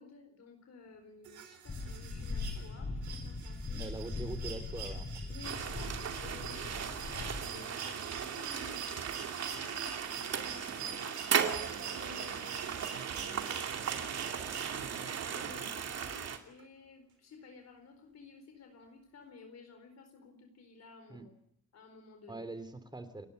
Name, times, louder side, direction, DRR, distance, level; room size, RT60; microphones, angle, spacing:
voice 1, 0.0-3.9 5.3-11.6 11.8-12.9 14.9-21.3 21.7-22.5, left 4 dB, 60° left, 6 dB, 4.4 m, -54 dB
sound 1, 1.2-15.2 16.6-16.7, right 7 dB, 70° right, 4.4 m, -46 dB
sound 2, 1.7-7.4, left 3 dB, 30° left, 7.3 m, -40 dB
voice 2, 3.7-5.1 21.1-21.2 22.3-23.3, right 2 dB, 15° right, 11 dB, 3.2 m, -43 dB
sound 3, 5.4-16.4, right 7 dB, 55° right, 2.6 m, -37 dB
29.5 x 11.5 x 8.2 m, 0.69 s
cardioid pair, 90°, 30 cm